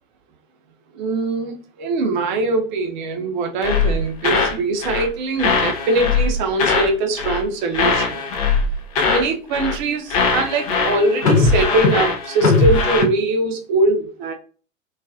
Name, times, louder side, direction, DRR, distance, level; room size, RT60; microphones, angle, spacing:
voice 1, 0.9-8.2 9.0-14.3, right 2 dB, 35° right, 0.6 m, -22 dB
sound 1, 3.6-4.6 4.8-5.1 5.4-6.9 7.2-7.5 7.7-9.3 9.5-9.8 10.1-13.0, left 4 dB, 30° left, 0.4 m, -19 dB
2.4 x 2.3 x 2.4 m
figure-of-eight pair, 100°, 40 cm